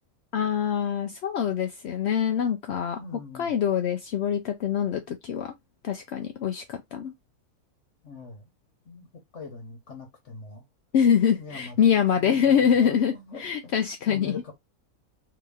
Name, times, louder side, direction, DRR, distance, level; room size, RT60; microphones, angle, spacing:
voice 1, 0.3-3.0 3.4-5.5 5.8-7.1 10.9-13.1 13.4-14.4, left 8 dB, 75° left, 0.6 m, -24 dB
voice 2, 2.9-3.5 8.0-8.5 8.8-9.1 9.3-10.6 11.3-13.4 13.9-14.5, left 4 dB, 50° left, 1.3 m, -42 dB
2.9 x 2.8 x 3.5 m
omnidirectional pair, 1.6 m